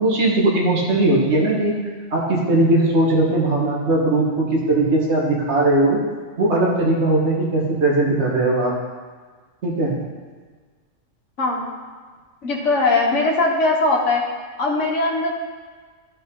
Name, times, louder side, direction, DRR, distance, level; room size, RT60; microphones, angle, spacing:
voice 1, 0.0-1.7 2.1-6.0 6.4-8.7 9.6-9.9, right 2 dB, 60° right, -3 dB, 1.8 m, -19 dB
voice 2, 11.4-11.7 12.4-14.2 14.6-15.3, left 2 dB, 70° left, -1 dB, 1.6 m, -20 dB
11.5 x 5.5 x 3.8 m, 1.5 s
omnidirectional pair, 1.3 m